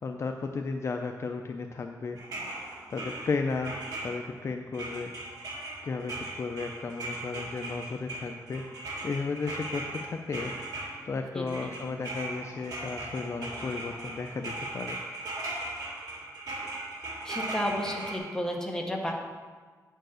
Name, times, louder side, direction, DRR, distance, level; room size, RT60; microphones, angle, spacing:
voice 1, 0.0-2.2 2.9-5.1 5.8-10.5 11.1-15.0, left 4 dB, 45° left, 4 dB, 0.5 m, -34 dB
sound 1, 2.2-4.5 4.7-11.2 11.5-18.2, right 2 dB, 70° right, 2.2 m, -38 dB
voice 2, 11.3-11.7 17.2-19.1, equal, 10° left, 0 dB, 1.2 m, -32 dB
9.0 x 4.6 x 6.3 m, 1.5 s
wide cardioid pair, 140°, 7 cm